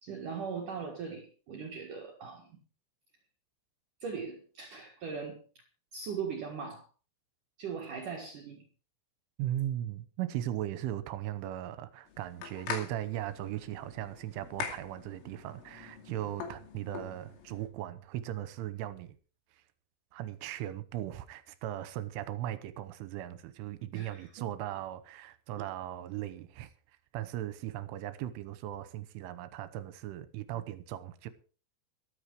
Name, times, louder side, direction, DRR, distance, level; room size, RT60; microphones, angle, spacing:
voice 1, 0.0-2.5 4.0-5.6 5.9-6.9 7.6-8.6 16.1-16.2 23.9-24.4 30.5-30.6, right 6 dB, 55° right, 2.4 m, -40 dB
voice 2, 9.4-19.2 20.1-26.7 27.1-31.3, right 13 dB, 75° right, 3.3 m, -38 dB
sound 1, 12.1-17.7, left 7 dB, 75° left, 5.0 m, -43 dB
13.5 x 13.0 x 4.8 m
omnidirectional pair, 5.9 m